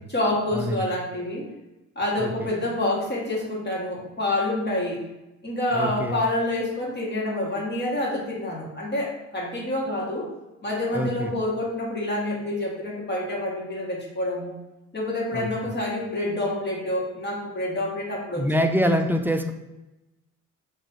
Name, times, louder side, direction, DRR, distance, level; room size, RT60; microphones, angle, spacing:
voice 1, 0.1-1.5 1.9-5.0 5.4-10.3 10.6-14.5 14.9-18.7 19.2-19.3, left 1 dB, 30° left, -4 dB, 1.4 m, -27 dB
voice 2, 5.7-6.2 10.9-11.3 15.3-15.5 18.4-19.5, equal, 5° right, 6 dB, 0.3 m, -24 dB
3.0 x 2.9 x 3.8 m, 1.0 s
supercardioid pair, 65°, 36 cm